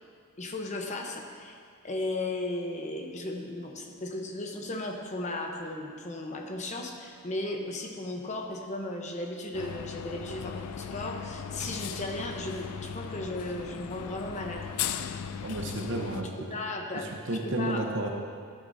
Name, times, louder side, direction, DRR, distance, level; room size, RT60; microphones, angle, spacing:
voice 1, 0.4-1.6 1.8-14.7 16.5-17.8, left 2 dB, 30° left, 2 dB, 0.9 m, -36 dB
sound 1, 9.5-16.2, left 7 dB, 90° left, 0.4 m, -37 dB
voice 2, 15.4-16.3 16.9-18.1, right 1 dB, 55° right, 2 dB, 0.9 m, -31 dB
12.5 x 9.3 x 2.7 m, 2.1 s
head